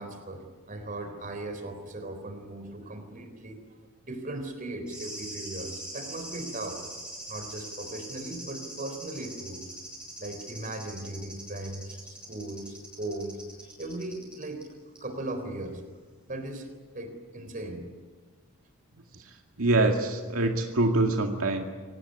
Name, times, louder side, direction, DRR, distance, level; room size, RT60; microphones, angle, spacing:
voice 1, 0.0-3.6 4.0-6.8 7.3-9.6 10.2-14.6 15.0-15.8 16.3-16.7 16.9-17.9, right 2 dB, 40° right, 7 dB, 4.0 m, -38 dB
sound 1, 4.9-14.6 15.0-15.1, right 1 dB, 5° right, 6.5 m, -42 dB
voice 2, 19.6-21.6, right 2 dB, 80° right, 2 dB, 2.1 m, -24 dB
24.5 x 18.5 x 9.9 m, 1.5 s
head